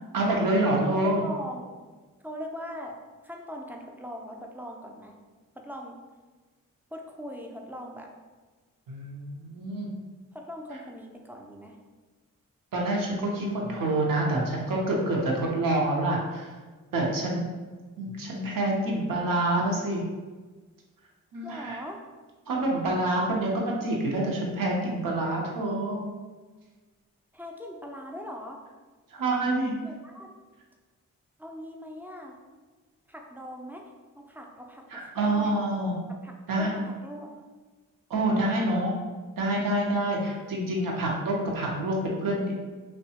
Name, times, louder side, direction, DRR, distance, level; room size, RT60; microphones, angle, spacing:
voice 1, 0.1-1.2 8.9-9.9 12.7-16.5 16.9-17.5 18.0-20.0 21.3-21.8 22.5-26.1 29.1-29.8 34.9-35.9 36.5-36.7 38.1-38.9 39.4-42.6, right 1 dB, 75° right, -1 dB, 0.7 m, -27 dB
voice 2, 0.8-1.7 2.2-3.0 3.2-5.2 5.6-6.0 6.9-8.1 10.3-11.8 21.4-22.0 27.3-28.6 29.8-30.3 31.4-32.4 33.1-33.8 34.1-35.6 36.1-37.4, equal, 5° right, 1 dB, 0.4 m, -40 dB
2.7 x 2.2 x 2.7 m, 1.3 s
cardioid pair, 50°, 34 cm